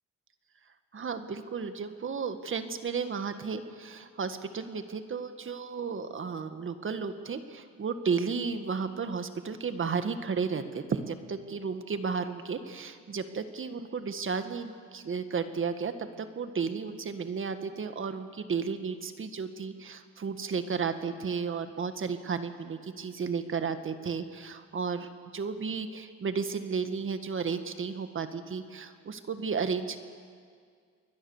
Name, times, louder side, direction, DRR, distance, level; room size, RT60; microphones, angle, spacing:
voice 1, 0.9-30.0, right 5 dB, 40° right, 9 dB, 1.7 m, -33 dB
28.0 x 21.0 x 7.2 m, 2.1 s
cardioid pair, 90°, 30 cm